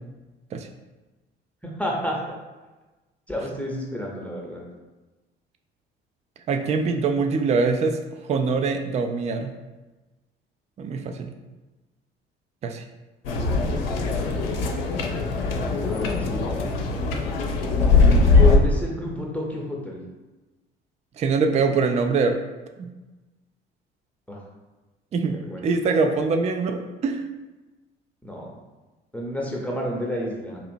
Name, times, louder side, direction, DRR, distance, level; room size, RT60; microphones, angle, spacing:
voice 1, 1.8-2.2 3.3-4.6 15.8-16.6 18.3-20.0 24.3-24.4 25.5-25.7 28.2-28.5 29.1-30.6, left 1 dB, 5° left, -3 dB, 0.7 m, -30 dB
voice 2, 6.5-8.0 8.3-9.5 10.8-11.3 12.6-12.8 21.2-22.3 22.8-22.9 25.1-25.4 25.6-27.2, right 4 dB, 25° right, 6 dB, 0.3 m, -23 dB
sound 1, 13.2-18.6, left 3 dB, 75° left, 0.5 m, -21 dB
4.1 x 2.8 x 2.6 m, 1.2 s
figure-of-eight pair, 50°, 29 cm